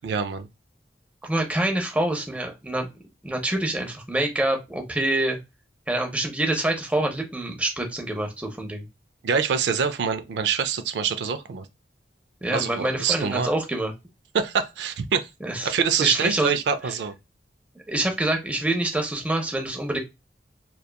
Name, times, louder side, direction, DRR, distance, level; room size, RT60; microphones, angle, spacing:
voice 1, 0.0-0.5 9.2-11.7 12.5-13.5 14.3-15.3 15.6-17.1, right 6 dB, 70° right, 0.4 m, -25 dB
voice 2, 1.2-2.9 3.2-5.4 5.9-8.8 12.4-13.9 15.4-15.7 16.0-16.5 17.9-20.0, right 1 dB, 10° right, 0.6 m, -26 dB
2.8 x 2.2 x 2.2 m
head